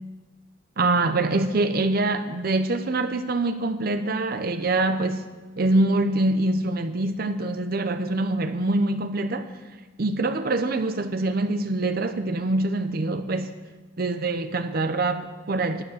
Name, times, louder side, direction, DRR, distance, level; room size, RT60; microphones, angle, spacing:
voice 1, 0.8-5.3 5.6-9.5 10.0-13.6 14.0-15.8, right 2 dB, 50° right, 9 dB, 0.6 m, -24 dB
12.5 x 9.7 x 7.4 m, 1.3 s
head